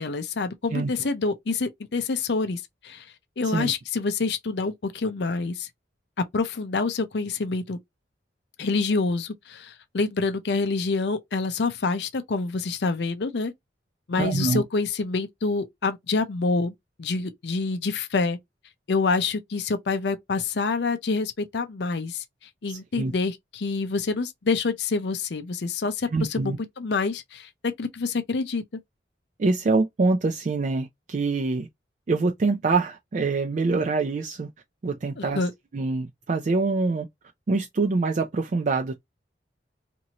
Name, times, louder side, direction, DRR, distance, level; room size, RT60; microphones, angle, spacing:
voice 1, 0.0-5.7 6.2-7.8 8.6-13.5 14.1-16.7 17.0-18.4 18.9-22.2 22.6-27.5 27.8-28.6 35.2-35.5, left 4 dB, 70° left, 0.5 m, -27 dB
voice 2, 14.2-14.6 22.7-23.1 26.1-26.6 29.4-31.7 32.1-34.5 34.8-35.4 35.7-37.1 37.5-38.9, right 3 dB, 40° right, 0.4 m, -25 dB
2.9 x 2.6 x 2.8 m
head